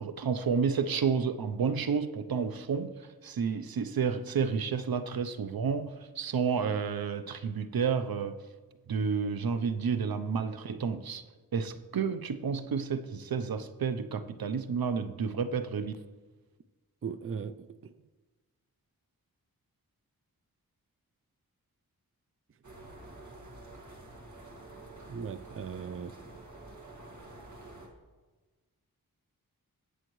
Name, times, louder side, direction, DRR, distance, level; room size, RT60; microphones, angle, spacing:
voice 1, 0.0-2.9 3.2-8.4 8.9-11.2 11.5-15.9, right 6 dB, 75° right, 0.7 m, -30 dB
voice 2, 17.0-17.5 25.1-26.1, right 6 dB, 40° right, 0.5 m, -37 dB
sound 1, 22.6-27.9, right 2 dB, 55° right, 2.0 m, -48 dB
20.0 x 7.7 x 3.1 m
wide cardioid pair, 85°, 36 cm